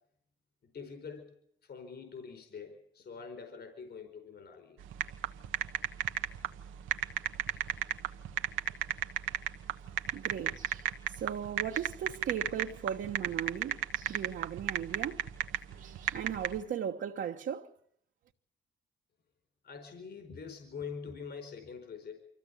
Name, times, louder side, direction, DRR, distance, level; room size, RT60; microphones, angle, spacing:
voice 1, 0.7-4.8 19.6-22.2, left 5 dB, 55° left, 4.8 m, -45 dB
sound 1, 4.8-16.6, right 10 dB, 85° right, 1.2 m, -34 dB
voice 2, 10.1-15.2 15.8-17.7, right 9 dB, 70° right, 1.4 m, -37 dB
25.0 x 15.5 x 8.5 m
cardioid pair, 90°, 20 cm